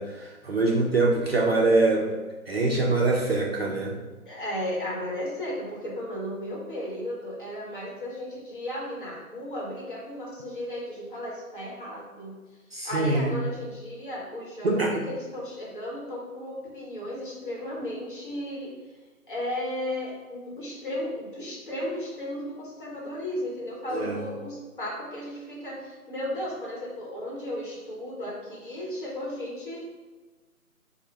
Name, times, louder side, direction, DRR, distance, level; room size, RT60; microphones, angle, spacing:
voice 1, 0.0-2.0 2.5-4.0 12.7-13.3 14.6-15.0 23.9-24.2, right 2 dB, 45° right, -2 dB, 0.5 m, -24 dB
voice 2, 4.3-12.3 12.8-18.8 19.3-29.8, left 1 dB, 35° left, -4 dB, 1.0 m, -35 dB
4.4 x 2.1 x 3.2 m, 1.3 s
figure-of-eight pair, 150°, 44 cm